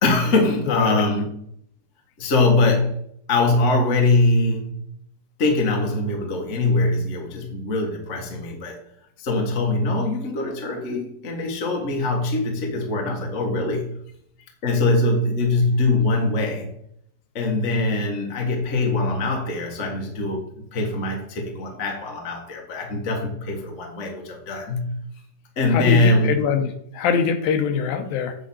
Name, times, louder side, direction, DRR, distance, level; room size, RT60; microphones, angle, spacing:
voice 1, 0.0-1.3 2.2-2.9 3.3-4.8 5.4-8.8 9.2-13.9 14.6-16.7 17.3-20.4 20.7-25.0 25.6-26.3, left 2 dB, 50° left, 1 dB, 0.8 m, -22 dB
voice 2, 0.7-1.1 25.7-28.4, left 6 dB, 80° left, 7 dB, 2.5 m, -23 dB
9.1 x 3.8 x 7.1 m, 0.70 s
omnidirectional pair, 4.2 m